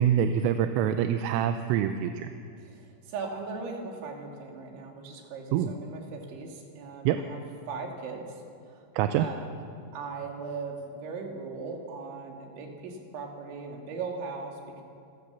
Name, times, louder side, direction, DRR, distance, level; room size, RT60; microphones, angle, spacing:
voice 1, 0.0-2.3 5.5-5.7 7.1-7.2 8.9-9.2, right 9 dB, 85° right, 8 dB, 3.4 m, -25 dB
voice 2, 2.6-7.4 7.7-8.4 9.2-9.5 9.9-14.8, right 4 dB, 65° right, 1 dB, 4.8 m, -38 dB
28.0 x 16.5 x 7.1 m, 2.4 s
omnidirectional pair, 5.8 m